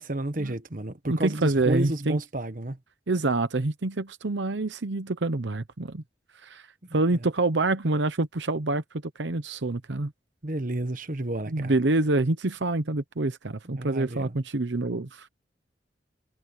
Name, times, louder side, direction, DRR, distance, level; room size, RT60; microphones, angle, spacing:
voice 1, 0.0-2.8 7.1-7.2 10.4-11.7 13.8-14.4, right 1 dB, 45° right, 1.4 m, -31 dB
voice 2, 1.1-2.2 3.1-6.0 6.4-6.7 6.9-8.8 9.2-10.1 11.5-15.3, right 2 dB, 75° right, 0.9 m, -26 dB
head